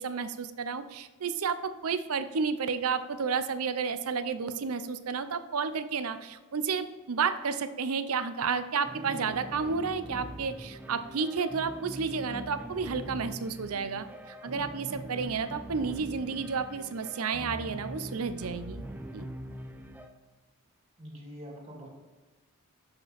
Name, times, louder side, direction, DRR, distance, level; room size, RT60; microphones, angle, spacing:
voice 1, 0.0-14.1 14.4-18.9 19.1-19.3, right 5 dB, 85° right, 11 dB, 0.6 m, -31 dB
sound 1, 8.8-20.1, right 1 dB, 10° right, 0.5 m, -43 dB
voice 2, 21.0-21.9, equal, 30° right, -2 dB, 2.3 m, -44 dB
6.8 x 5.7 x 4.1 m, 1.3 s
head